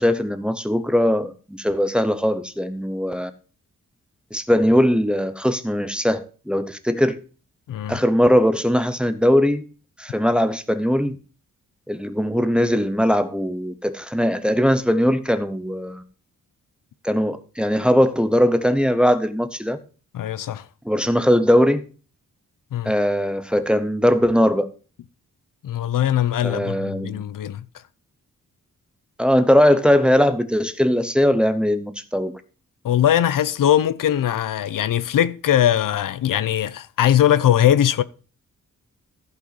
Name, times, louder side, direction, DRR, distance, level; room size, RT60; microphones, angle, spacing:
voice 1, 0.0-3.3 4.3-7.2 7.9-9.6 10.0-11.2 11.9-16.0 17.0-19.8 20.8-21.9 22.8-24.7 26.4-27.2 29.2-32.4, equal, 5° right, 0.7 m, -20 dB
voice 2, 7.7-8.0 20.1-20.7 22.7-22.9 25.6-27.6 32.8-38.0, left 11 dB, 80° left, 0.6 m, -20 dB
15.0 x 5.7 x 4.1 m
wide cardioid pair, 165°, 32 cm